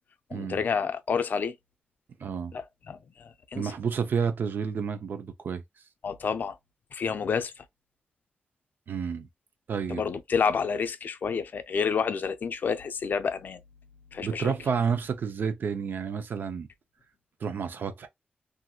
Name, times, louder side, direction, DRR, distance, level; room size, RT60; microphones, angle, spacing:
voice 1, 0.3-1.5 2.5-3.7 6.0-6.6 6.9-7.7 9.9-13.6 14.1-14.5, left 6 dB, 60° left, 0.4 m, -29 dB
voice 2, 2.2-2.5 3.5-5.6 8.9-9.3 9.7-10.0 14.2-16.7 17.4-18.1, right 6 dB, 65° right, 0.5 m, -30 dB
2.8 x 2.5 x 2.3 m
wide cardioid pair, 110°, 4 cm